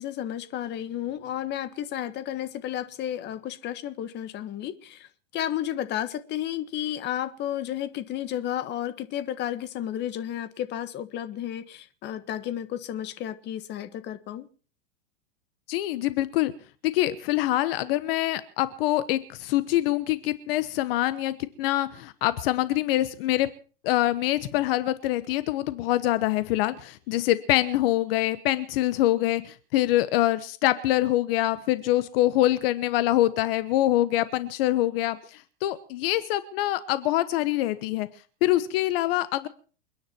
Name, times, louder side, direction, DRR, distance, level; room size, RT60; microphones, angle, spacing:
voice 1, 0.0-5.1 5.3-14.5, left 11 dB, 30° left, 1.5 m, -32 dB
voice 2, 15.7-16.5 16.8-23.5 23.8-38.1 38.4-39.5, left 15 dB, 50° left, 1.2 m, -25 dB
29.0 x 10.0 x 4.5 m
supercardioid pair, 145°, 37 cm